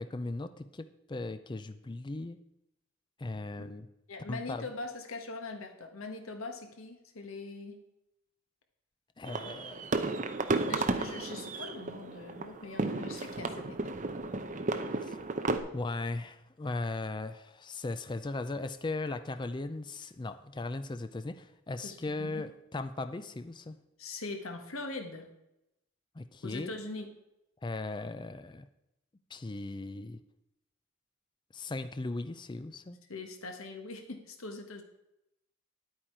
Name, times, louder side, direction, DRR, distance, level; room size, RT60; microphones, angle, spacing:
voice 1, 0.0-2.4 3.2-3.9 4.3-4.6 9.2-9.9 14.9-15.2 15.7-23.8 26.2-26.7 27.6-28.7 29.3-30.2 31.5-33.0, left 2 dB, 20° left, 10 dB, 0.4 m, -38 dB
voice 2, 4.1-7.8 10.7-13.9 21.8-22.4 24.0-25.3 26.4-27.1 33.1-34.8, left 3 dB, 70° left, 5 dB, 1.4 m, -42 dB
sound 1, 9.3-15.6, right 3 dB, 35° right, 0.8 m, -33 dB
10.5 x 8.7 x 4.5 m, 0.88 s
head